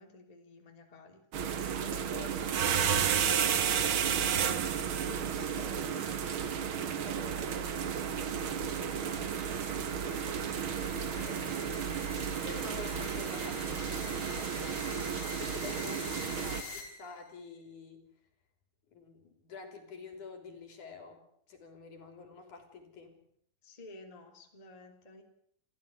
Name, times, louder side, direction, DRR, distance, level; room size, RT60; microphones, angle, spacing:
voice 1, 0.0-4.1 5.1-7.8 9.1-9.7 10.6-11.2 15.9-16.3 23.6-25.2, left 2 dB, 10° left, 3 dB, 2.7 m, -52 dB
sound 1, 1.3-16.6, right 8 dB, 65° right, 1.3 m, -32 dB
sound 2, 3.3-17.3, left 4 dB, 40° left, 5.1 m, -48 dB
voice 2, 11.7-12.0 12.4-18.1 18.9-23.1, left 4 dB, 55° left, 6 dB, 4.7 m, -49 dB
29.0 x 14.0 x 8.3 m, 0.70 s
omnidirectional pair, 4.3 m